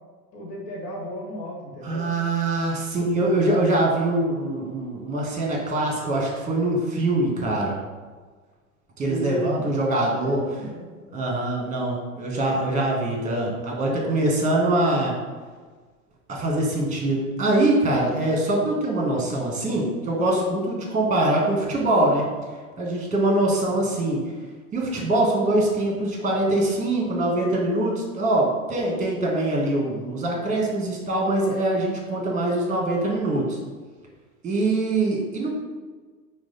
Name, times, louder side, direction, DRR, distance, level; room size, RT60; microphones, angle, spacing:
voice 1, 0.3-2.0 9.0-9.8 10.2-11.2 23.6-23.9, equal, 70° left, -1 dB, 1.0 m, -34 dB
voice 2, 1.8-7.8 9.0-10.4 11.1-15.2 16.3-22.2 22.8-24.2 24.7-33.6 34.4-35.5, right 2 dB, 15° right, -1 dB, 1.2 m, -23 dB
4.7 x 2.1 x 4.0 m, 1.4 s
hypercardioid pair, 90°, 47 cm